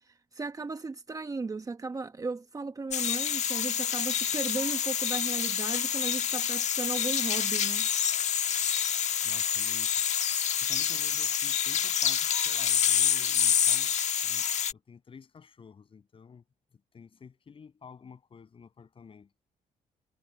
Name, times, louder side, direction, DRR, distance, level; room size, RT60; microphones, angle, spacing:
voice 1, 0.1-7.9, right 4 dB, 25° right, 1.3 m, -36 dB
sound 1, 2.9-14.7, left 9 dB, 55° left, 1.3 m, -27 dB
voice 2, 9.2-9.9 10.6-13.9 14.2-16.4 16.9-19.3, left 6 dB, 40° left, 7.1 m, -51 dB
cardioid pair, 100°, 14 cm